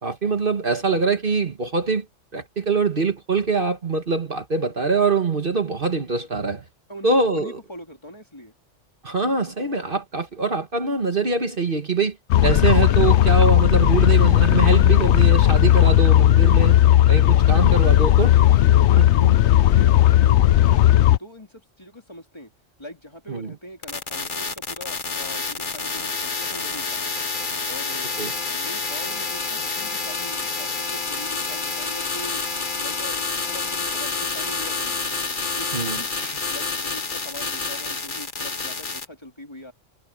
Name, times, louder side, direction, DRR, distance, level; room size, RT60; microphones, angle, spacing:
voice 1, 0.0-2.1 2.3-6.6 7.0-7.6 9.0-12.2 12.4-16.8 17.1-18.3 18.9-19.0 23.3-23.5 28.2-28.3 35.7-36.4, right 4 dB, 45° right, 1.7 m, -23 dB
voice 2, 6.9-8.5 18.3-22.5 22.8-27.2 27.6-28.1 28.5-35.0 35.6-39.7, equal, 20° left, 3.0 m, -42 dB
sound 1, 12.3-21.2, left 13 dB, 70° left, 0.9 m, -15 dB
sound 2, 23.8-39.0, left 4 dB, 40° left, 1.6 m, -28 dB
omnidirectional pair, 1.3 m